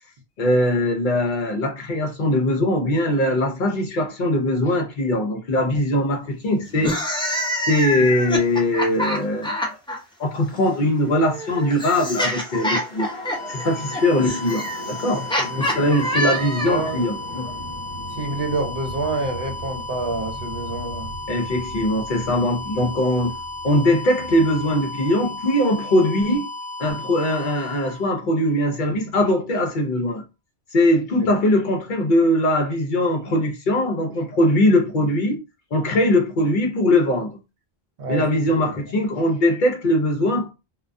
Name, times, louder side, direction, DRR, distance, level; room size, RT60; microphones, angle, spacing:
voice 1, 0.4-7.0 7.6-9.8 10.2-13.1 13.5-15.2 15.6-17.5 21.3-23.3 23.6-26.5 26.8-30.2 30.7-35.4 35.7-37.4 38.1-40.5, left 1 dB, 55° left, 0.7 m, -21 dB
sound 1, 6.7-10.0 11.0-16.9, equal, 10° left, 0.3 m, -26 dB
sound 2, 10.3-25.5, right 1 dB, 25° left, 0.8 m, -40 dB
sound 3, 13.0-28.8, left 2 dB, 25° right, 0.9 m, -34 dB
voice 2, 15.1-15.9 16.2-16.4 16.7-17.0 18.1-21.1 28.9-29.0 31.2-31.3 38.0-38.8, right 2 dB, 60° right, 0.9 m, -28 dB
2.2 x 2.2 x 2.5 m
omnidirectional pair, 1.1 m